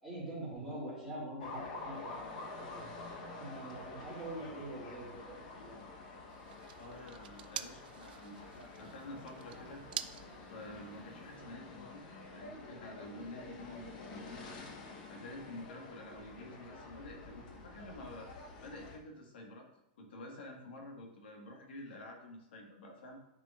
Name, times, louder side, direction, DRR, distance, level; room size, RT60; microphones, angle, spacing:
voice 1, 0.0-2.8 3.4-5.8, right 1 dB, ahead, -9 dB, 2.5 m, -44 dB
sound 1, 1.4-19.0, left 3 dB, 45° left, 1.0 m, -49 dB
sound 2, 6.3-11.4, right 11 dB, 65° right, 0.4 m, -47 dB
voice 2, 6.8-8.4 8.8-9.8 10.5-12.0 12.3-14.5 15.1-18.3 18.6-19.7 20.0-23.2, left 1 dB, 90° left, 1 dB, 1.5 m, -49 dB
10.0 x 4.9 x 2.4 m, 0.89 s
supercardioid pair, 175°, 5 cm